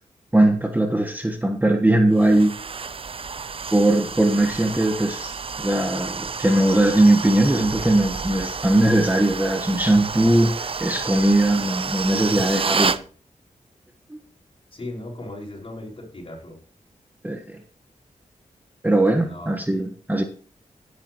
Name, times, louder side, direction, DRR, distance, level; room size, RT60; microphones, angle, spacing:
voice 1, 0.3-2.6 3.7-13.0 14.1-14.2 17.2-17.6 18.8-20.2, right 1 dB, 10° right, 4 dB, 1.4 m, -20 dB
sound 1, 2.2-13.0, right 5 dB, 40° right, 0.5 m, -30 dB
voice 2, 14.7-16.6 19.2-19.5, left 1 dB, 40° left, -1 dB, 5.3 m, -37 dB
16.0 x 9.6 x 3.0 m, 0.42 s
wide cardioid pair, 80°, 14 cm